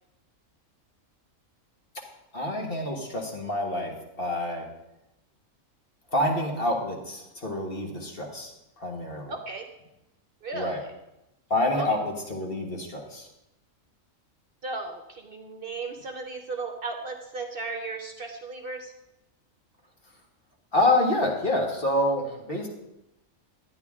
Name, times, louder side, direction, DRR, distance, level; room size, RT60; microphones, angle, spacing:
voice 1, 2.3-4.6 6.1-8.5 8.8-9.3 10.5-10.8 11.5-13.3 20.7-22.7, left 1 dB, 45° left, 0 dB, 1.7 m, -27 dB
voice 2, 9.3-9.7 10.4-10.9 11.7-11.9 14.6-18.9, right 3 dB, 50° right, 3 dB, 0.9 m, -35 dB
11.0 x 9.7 x 3.6 m, 0.90 s
omnidirectional pair, 1.4 m